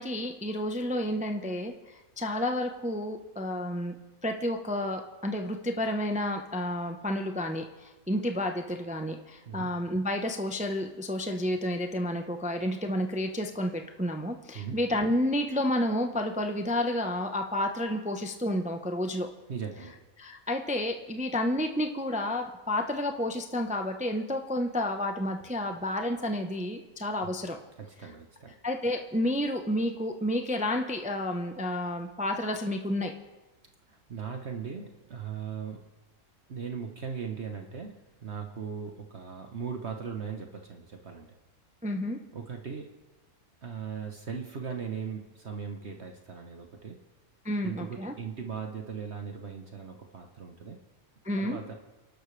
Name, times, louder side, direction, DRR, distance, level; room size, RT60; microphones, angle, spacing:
voice 1, 0.0-1.7 2.2-3.9 4.2-19.3 20.2-27.6 28.6-33.1 41.8-42.2 47.4-48.1 51.2-51.6, left 1 dB, 5° right, 4 dB, 0.7 m, -30 dB
voice 2, 19.5-20.0 27.2-27.3 27.8-28.6 33.9-35.8 36.5-41.3 42.3-42.9 43.6-47.0 47.6-50.8 51.4-51.7, right 6 dB, 50° right, 3 dB, 1.3 m, -38 dB
29.0 x 12.0 x 3.3 m, 1.1 s
omnidirectional pair, 1.5 m